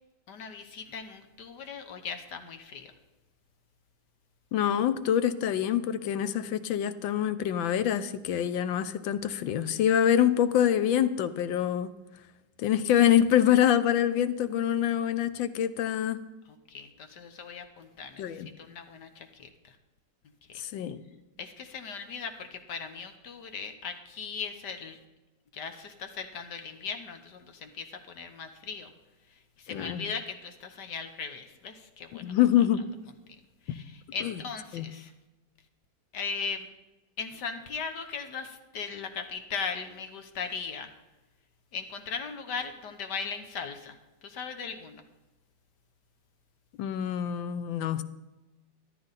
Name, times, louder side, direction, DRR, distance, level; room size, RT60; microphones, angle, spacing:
voice 1, 0.3-2.9 16.7-19.8 21.4-25.0 25.5-28.9 29.3-32.3 33.3-35.1 36.1-36.7 37.2-40.9 41.7-45.0, left 5 dB, 65° left, 7 dB, 1.5 m, -38 dB
voice 2, 4.5-12.0 12.6-16.2 18.2-18.5 20.6-21.0 29.7-30.0 32.2-32.9 33.7-33.8 34.2-34.4 34.7-34.9 46.8-48.0, left 10 dB, 90° left, 13 dB, 1.4 m, -25 dB
13.5 x 12.0 x 4.1 m, 1.1 s
omnidirectional pair, 2.0 m